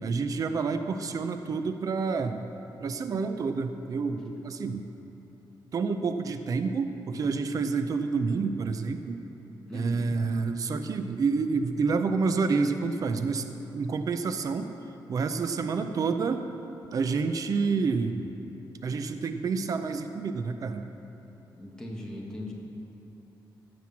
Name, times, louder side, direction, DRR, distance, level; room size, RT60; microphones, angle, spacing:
voice 1, 0.0-2.4 2.8-4.9 5.7-9.2 9.7-14.7 15.1-16.5 16.9-18.3 18.8-20.9, right 4 dB, 45° right, 8 dB, 0.5 m, -28 dB
voice 2, 9.7-10.2 21.5-22.5, left 1 dB, 10° left, -3 dB, 1.6 m, -39 dB
15.5 x 6.1 x 7.2 m, 3.0 s
wide cardioid pair, 165°, 8 cm